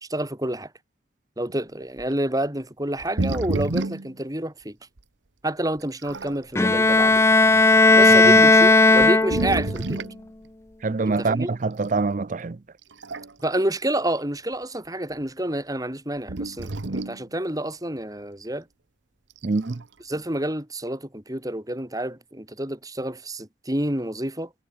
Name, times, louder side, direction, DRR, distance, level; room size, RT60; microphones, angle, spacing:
voice 1, 0.0-0.7 1.4-4.8 5.4-7.2 7.9-10.0 11.0-11.5 13.4-18.7 20.0-24.5, right 1 dB, 20° right, 3.4 m, -28 dB
sound 1, 2.0-2.1 3.0-4.1 5.0-5.1 5.8-6.4 7.2-7.4 8.3-8.4 8.9-10.2 11.9-12.0 12.8-13.5 13.9-14.0 16.3-17.2 19.3-19.8, right 2 dB, 90° right, 1.1 m, -29 dB
Bowed string instrument, 6.6-9.7, left 3 dB, 15° left, 0.4 m, -15 dB
voice 2, 10.8-12.6 19.4-19.8, right 3 dB, 45° right, 0.5 m, -25 dB
head